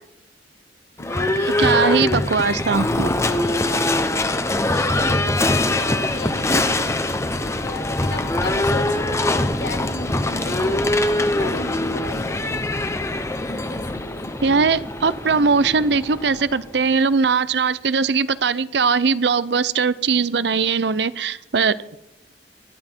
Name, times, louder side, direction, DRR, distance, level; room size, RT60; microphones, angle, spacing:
voice 1, 1.0-1.8 3.2-10.8 11.4-12.6 13.4-14.3, left 3 dB, 65° left, 5 dB, 1.8 m, -35 dB
Livestock farm animals working animals / Bell, 1.0-16.9, left 1 dB, 15° left, 0.7 m, -23 dB
voice 2, 1.6-3.1 14.4-21.7, right 5 dB, 65° right, 16 dB, 0.6 m, -20 dB
19.5 x 11.5 x 4.5 m, 0.86 s
head